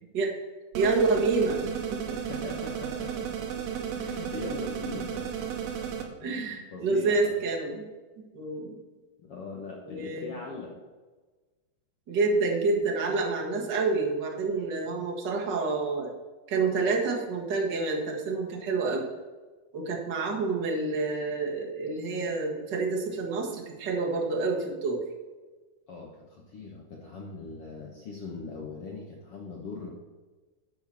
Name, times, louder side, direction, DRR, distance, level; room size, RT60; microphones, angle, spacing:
voice 1, 0.7-2.2 3.8-3.9 6.2-7.8 8.3-8.7 9.8-10.4 12.1-16.2 16.5-19.1 19.7-25.0, right 3 dB, 50° right, -1 dB, 1.2 m, -28 dB
sound 1, 0.7-6.0, right 8 dB, 75° right, 2.9 m, -34 dB
voice 2, 2.1-3.6 3.9-5.9 6.2-7.4 9.2-10.7 25.9-29.9, left 4 dB, 70° left, -1 dB, 1.3 m, -41 dB
10.0 x 5.0 x 7.0 m, 1.3 s
omnidirectional pair, 4.5 m